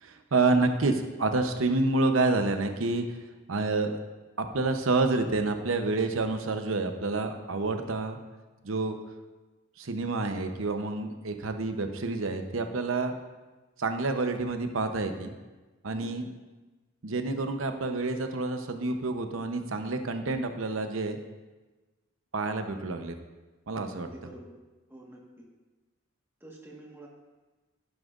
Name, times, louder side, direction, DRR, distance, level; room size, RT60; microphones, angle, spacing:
voice 1, 0.0-3.0 3.5-4.0 4.4-8.2 8.6-9.0 9.8-13.1 13.8-15.3 15.8-16.3 17.0-21.2 22.3-23.1 23.7-24.1, right 3 dB, 85° right, 6 dB, 0.8 m, -28 dB
voice 2, 16.0-16.3 23.9-24.5 24.9-25.2 26.4-27.1, right 1 dB, 10° right, -2 dB, 1.4 m, -47 dB
11.5 x 10.5 x 2.5 m, 1.2 s
head